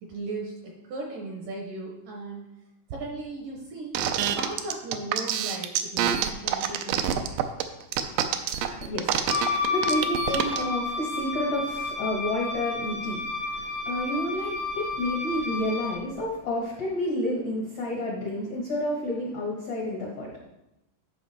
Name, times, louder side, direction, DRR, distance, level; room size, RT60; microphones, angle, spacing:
voice 1, 0.0-2.4 2.9-7.1, right 2 dB, 75° right, 0 dB, 2.0 m, -37 dB
sound 1, 4.0-10.6, right 10 dB, 90° right, 2.0 m, -26 dB
voice 2, 7.9-20.3, left 1 dB, 75° left, -3 dB, 1.4 m, -30 dB
Wind instrument woodwind instrument, 9.2-16.0, left 3 dB, 40° left, 0.3 m, -31 dB
11.0 x 5.4 x 4.2 m, 0.92 s
omnidirectional pair, 4.9 m